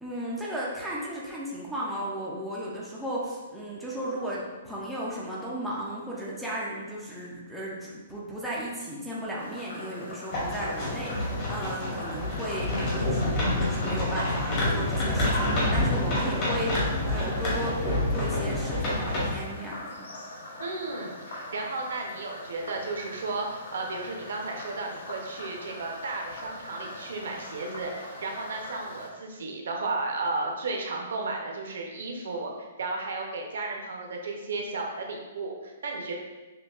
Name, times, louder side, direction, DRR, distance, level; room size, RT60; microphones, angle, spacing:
voice 1, 0.0-20.1, equal, ahead, -6 dB, 0.4 m, -35 dB
Frog, 9.4-29.1, left 1 dB, 85° left, 0.9 m, -43 dB
sound 1, 10.3-19.4, left 1 dB, 25° left, 0.9 m, -27 dB
voice 2, 20.6-36.1, right 3 dB, 60° right, 1 dB, 0.6 m, -34 dB
6.5 x 2.2 x 2.3 m, 1.2 s
hypercardioid pair, 180°, 0 cm